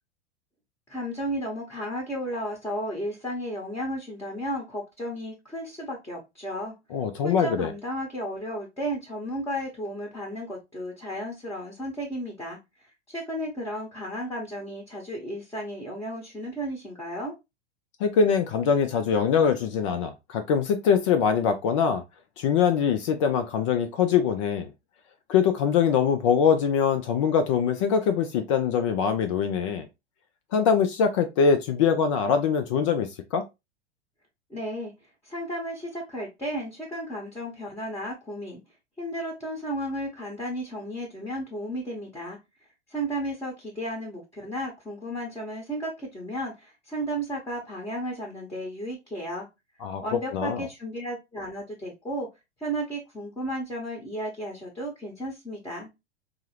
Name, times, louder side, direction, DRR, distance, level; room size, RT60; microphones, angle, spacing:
voice 1, 0.9-6.7 7.2-12.6 13.1-17.3 34.5-34.9 35.2-38.6 39.0-42.4 42.9-49.5 50.0-52.3 52.6-55.9, equal, 10° left, 1.0 m, -33 dB
voice 2, 6.9-7.7 18.0-22.0 22.4-24.7 25.3-29.9 30.5-33.4 49.8-50.0 50.3-50.7, left 7 dB, 30° left, 0.3 m, -23 dB
4.4 x 2.0 x 3.0 m
figure-of-eight pair, 90°, 34 cm